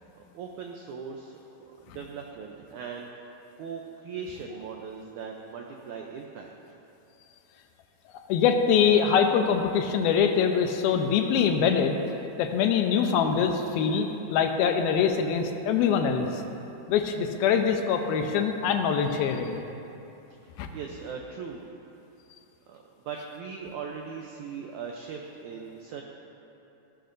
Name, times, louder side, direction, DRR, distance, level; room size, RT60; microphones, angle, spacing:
voice 1, 0.1-3.3 3.6-6.5 20.7-21.6 22.7-26.0, right 6 dB, 80° right, 1 dB, 1.7 m, -39 dB
voice 2, 8.3-12.0 12.4-16.4 16.9-19.6 20.6-20.7, left 7 dB, 85° left, 5 dB, 2.6 m, -24 dB
15.5 x 13.0 x 2.6 m, 2.9 s
omnidirectional pair, 4.2 m